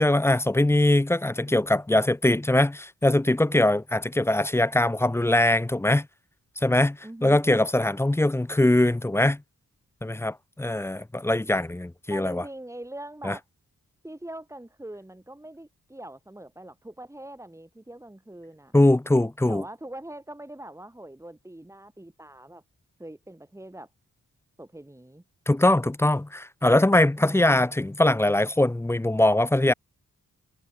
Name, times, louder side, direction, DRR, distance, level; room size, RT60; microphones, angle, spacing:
voice 1, 0.0-6.1 6.6-9.4 10.0-12.4 13.2-13.4 18.7-19.6 25.5-29.7, left 1 dB, 10° left, 0.4 m, -22 dB
voice 2, 7.0-7.4 12.1-13.4 14.0-18.7 19.5-22.6 23.0-23.9 24.6-25.2 27.1-27.7, right 1 dB, 10° right, 5.6 m, -42 dB
wide cardioid pair, 160°, 32 cm